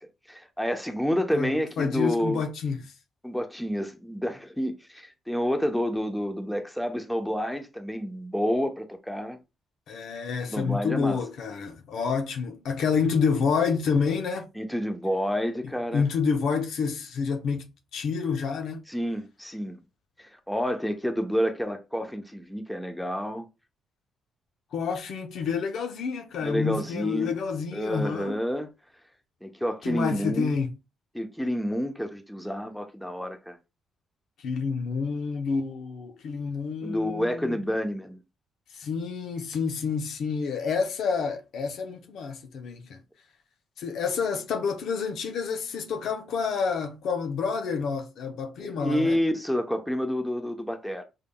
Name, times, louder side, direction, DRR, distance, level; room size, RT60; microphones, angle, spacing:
voice 1, 0.3-2.4 3.2-9.4 10.5-11.2 14.6-16.0 18.9-19.8 20.2-23.4 26.4-27.3 27.7-28.7 29.4-30.5 31.1-33.6 36.8-38.2 48.6-51.0, equal, 5° left, 0.9 m, -29 dB
voice 2, 1.3-2.9 9.9-14.5 15.9-18.8 24.7-28.4 29.8-30.7 34.4-37.6 38.7-43.0 43.8-49.2, left 5 dB, 70° left, 0.8 m, -28 dB
5.6 x 3.4 x 2.3 m
cardioid pair, 90°, 0 cm